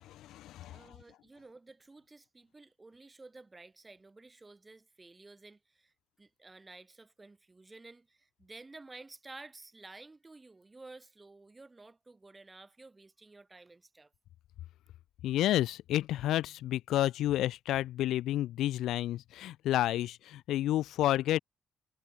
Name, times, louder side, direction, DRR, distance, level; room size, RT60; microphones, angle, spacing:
voice 1, 0.1-0.8 15.2-21.4, left 13 dB, 85° left, 0.6 m, -30 dB
voice 2, 0.6-5.9 6.2-14.1, right 3 dB, 20° right, 6.9 m, -53 dB
cardioid pair, 90°, 0 cm